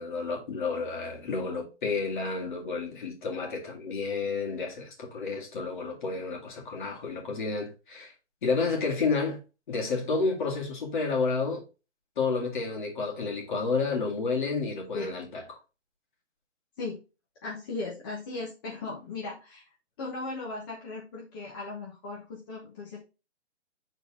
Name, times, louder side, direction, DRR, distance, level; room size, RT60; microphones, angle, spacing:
voice 1, 0.0-8.1 8.4-9.4 9.7-11.6 12.2-15.6, left 4 dB, 45° left, 2.2 m, -30 dB
voice 2, 17.4-19.6 20.0-23.0, left 3 dB, 20° left, 1.0 m, -37 dB
6.8 x 4.0 x 3.6 m
hypercardioid pair, 165°, 35 cm